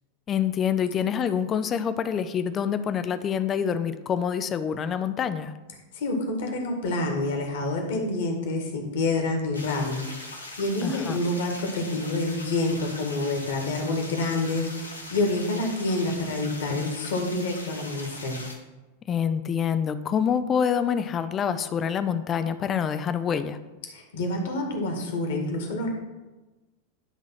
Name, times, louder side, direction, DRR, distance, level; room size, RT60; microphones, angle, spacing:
voice 1, 0.3-5.5 10.8-11.2 19.1-23.6, left 7 dB, 25° left, 12 dB, 0.5 m, -26 dB
voice 2, 5.9-18.4 23.9-25.9, left 2 dB, 55° left, 3 dB, 1.8 m, -28 dB
sound 1, 9.5-18.5, left 2 dB, 85° left, 1.3 m, -41 dB
11.0 x 3.7 x 5.8 m, 1.1 s
figure-of-eight pair, 90°, 0 cm